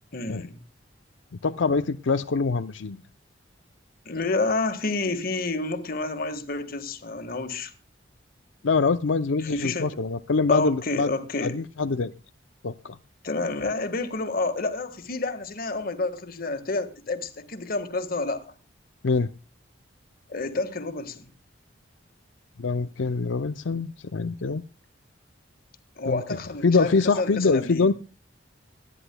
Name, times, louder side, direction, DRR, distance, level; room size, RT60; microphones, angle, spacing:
voice 1, 0.1-0.6 4.0-7.7 9.4-10.0 10.5-11.6 13.2-18.5 20.3-21.3 26.0-27.8, left 3 dB, 50° left, 1.6 m, -29 dB
voice 2, 1.4-3.0 8.6-11.1 11.4-12.1 12.6-13.0 19.0-19.3 22.6-24.6 26.1-26.2 26.6-27.9, left 4 dB, 85° left, 0.6 m, -24 dB
25.5 x 10.0 x 2.2 m
head